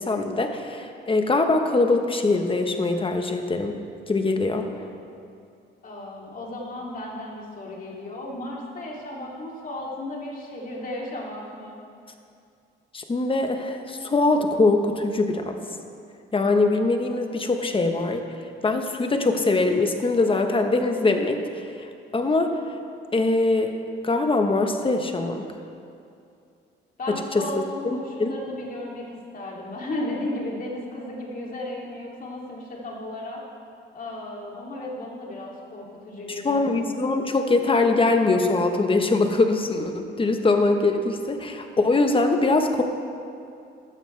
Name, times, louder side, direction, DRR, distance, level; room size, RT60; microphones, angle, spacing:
voice 1, 0.0-3.8 4.1-4.7 12.9-15.6 16.3-18.2 18.6-21.6 22.1-22.5 23.1-23.8 24.0-25.4 27.1-27.4 27.8-28.3 36.4-42.8, left 3 dB, 25° left, 5 dB, 1.2 m, -22 dB
voice 2, 5.8-11.8 27.0-33.4 33.9-36.7, left 1 dB, 45° left, -3 dB, 3.0 m, -34 dB
15.5 x 11.5 x 3.4 m, 2.5 s
cardioid pair, 90°, 20 cm